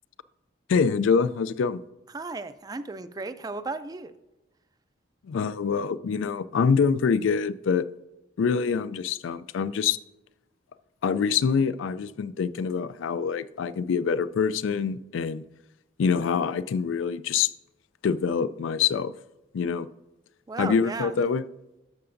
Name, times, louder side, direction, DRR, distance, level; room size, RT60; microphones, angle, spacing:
voice 1, 0.7-1.8 5.3-7.9 8.4-10.0 11.0-15.4 16.0-17.5 18.0-19.1 19.5-19.9 20.6-21.4, left 6 dB, 85° left, 16 dB, 0.3 m, -25 dB
voice 2, 2.1-4.2 20.5-21.2, right 3 dB, 20° right, 13 dB, 0.3 m, -35 dB
12.5 x 6.8 x 2.6 m, 1.0 s
head